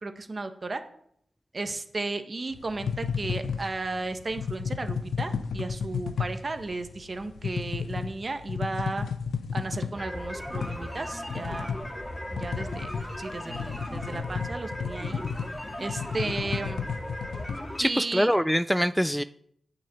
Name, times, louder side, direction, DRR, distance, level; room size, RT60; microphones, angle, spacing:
voice 1, 0.0-0.8 1.5-9.0 9.5-11.7 12.3-12.9 13.2-15.2 15.8-16.8 17.8-18.3, right 3 dB, 45° right, 8 dB, 1.4 m, -34 dB
sound 1, 2.5-17.6, left 6 dB, 80° left, 0.7 m, -33 dB
sound 2, 9.9-17.8, left 1 dB, 20° left, 2.7 m, -37 dB
voice 2, 17.8-19.2, equal, ahead, 13 dB, 0.4 m, -24 dB
9.0 x 6.7 x 7.9 m, 0.69 s
cardioid pair, 50°, 0 cm